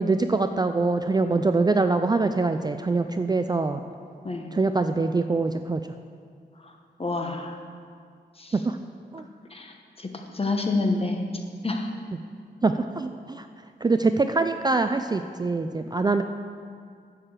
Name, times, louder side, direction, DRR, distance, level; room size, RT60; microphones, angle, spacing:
voice 1, 0.0-3.8 4.5-5.8 8.5-8.8 9.1-9.3 12.6-13.5 13.8-16.2, right 3 dB, 25° right, 8 dB, 0.3 m, -24 dB
voice 2, 7.0-7.5 8.4-8.6 9.5-11.3 11.6-11.9, left 3 dB, 35° left, 3 dB, 1.1 m, -28 dB
9.5 x 4.9 x 7.4 m, 2.2 s
cardioid pair, 70°, 18 cm